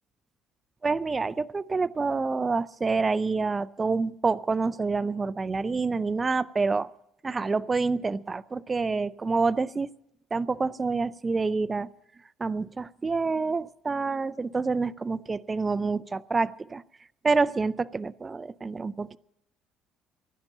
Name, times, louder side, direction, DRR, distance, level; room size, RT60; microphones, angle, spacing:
voice 1, 0.8-6.9 7.2-9.9 10.3-11.9 12.4-16.8 17.2-19.2, right 4 dB, 20° right, 16 dB, 0.5 m, -27 dB
15.5 x 11.0 x 7.3 m, 0.81 s
cardioid pair, 125°, 0 cm